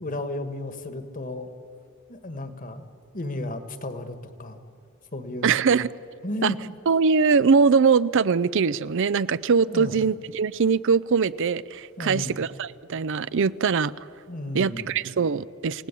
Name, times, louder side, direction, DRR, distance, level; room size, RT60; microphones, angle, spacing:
voice 1, 0.0-1.5 2.1-2.8 3.1-4.6 5.1-5.6 6.2-6.6 9.7-9.9 12.0-12.3 14.3-14.9, left 1 dB, 40° left, 1.6 m, -33 dB
voice 2, 5.4-5.9 6.4-6.5 6.9-13.9 14.5-15.9, right 5 dB, 60° right, 0.5 m, -22 dB
28.5 x 18.0 x 8.4 m
head